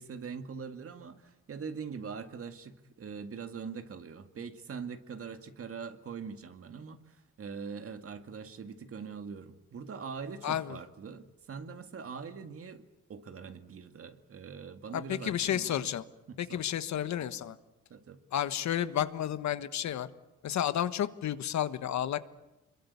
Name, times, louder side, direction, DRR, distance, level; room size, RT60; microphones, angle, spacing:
voice 1, 0.0-15.9 16.3-16.6 17.9-18.2, right 5 dB, 50° right, 2.1 m, -43 dB
voice 2, 10.4-10.8 14.9-16.0 16.4-17.6 18.3-20.1 20.4-22.2, left 10 dB, 70° left, 1.4 m, -31 dB
25.5 x 22.5 x 8.3 m
cardioid pair, 90°, 30 cm